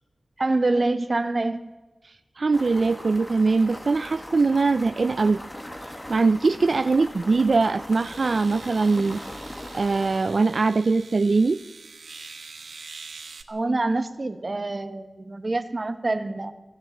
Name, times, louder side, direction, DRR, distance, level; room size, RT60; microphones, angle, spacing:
voice 1, 0.4-1.6 13.5-16.5, right 2 dB, 40° right, 9 dB, 1.7 m, -26 dB
voice 2, 2.0-5.4 5.8-9.2 9.7-11.6, right 3 dB, 60° right, 11 dB, 0.6 m, -22 dB
sound 1, 2.5-10.4, left 1 dB, 15° left, 1.8 m, -39 dB
sound 2, 7.9-13.4, right 4 dB, 85° right, 1.9 m, -44 dB
19.5 x 16.0 x 8.5 m, 1.2 s
wide cardioid pair, 80°, 0 cm